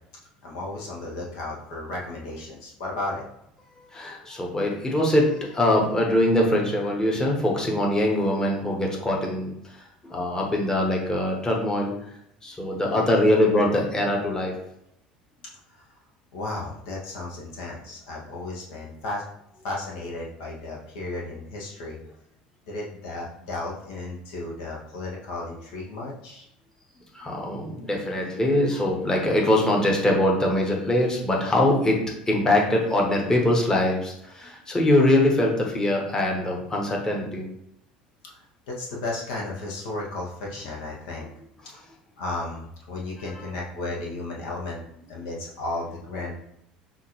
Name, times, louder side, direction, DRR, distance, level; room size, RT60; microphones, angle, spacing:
voice 1, 0.4-3.2 16.3-19.2 19.6-22.1 22.7-26.5 38.2-38.3 38.7-41.3 42.2-44.8 45.1-46.3, left 2 dB, 60° left, -3 dB, 0.9 m, -34 dB
voice 2, 3.9-9.5 10.0-11.9 12.4-14.6 27.1-32.0 32.3-37.5 43.3-43.4, left 1 dB, 15° left, -1 dB, 1.2 m, -23 dB
5.7 x 2.5 x 3.1 m, 0.76 s
figure-of-eight pair, 65°, 4 cm